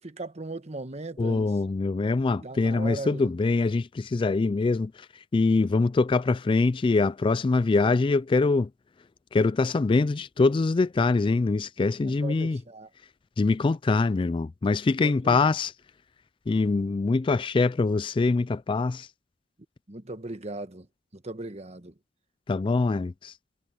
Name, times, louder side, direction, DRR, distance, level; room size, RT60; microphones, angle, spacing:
voice 1, 0.0-1.5 2.4-3.3 12.0-12.9 15.0-15.4 19.9-20.9 21.1-21.9, right 2 dB, 35° right, 1.3 m, -38 dB
voice 2, 1.2-4.9 5.3-8.7 9.3-12.6 13.4-15.7 16.5-19.1 22.5-23.3, left 3 dB, 25° left, 0.3 m, -24 dB
head